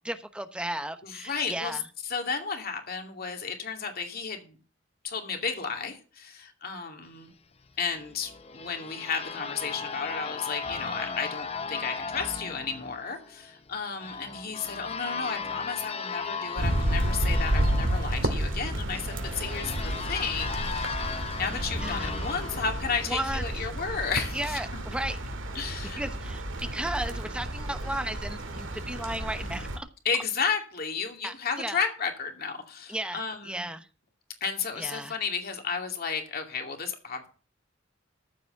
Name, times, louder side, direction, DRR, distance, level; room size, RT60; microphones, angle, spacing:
voice 1, 0.0-1.8 21.8-22.1 23.1-23.7 24.3-25.2 26.0-29.9 31.2-31.8 32.9-33.9 34.8-35.2, right 1 dB, 5° right, 9 dB, 1.0 m, -35 dB
voice 2, 1.0-1.8 2.0-4.6 5.0-7.3 7.8-21.0 21.4-24.6 25.5-26.0 30.0-33.7 34.4-37.3, left 5 dB, 50° left, 3 dB, 2.5 m, -33 dB
sound 1, 7.9-23.6, left 5 dB, 30° left, 0.8 m, -37 dB
sound 2, 16.6-29.8, right 1 dB, 75° right, 2.0 m, -31 dB
14.0 x 5.0 x 7.8 m, 0.36 s
head